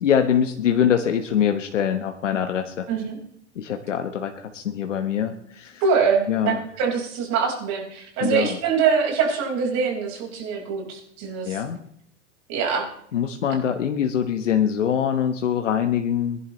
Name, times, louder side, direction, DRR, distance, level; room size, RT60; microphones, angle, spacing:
voice 1, 0.0-2.9 3.5-5.8 6.3-6.6 8.2-8.6 11.4-11.8 13.1-16.4, left 8 dB, 90° left, 7 dB, 1.2 m, -23 dB
voice 2, 5.8-11.6 12.5-12.8, right 6 dB, 50° right, 1 dB, 4.9 m, -24 dB
22.0 x 11.0 x 3.1 m, 0.68 s
hypercardioid pair, 105°, 36 cm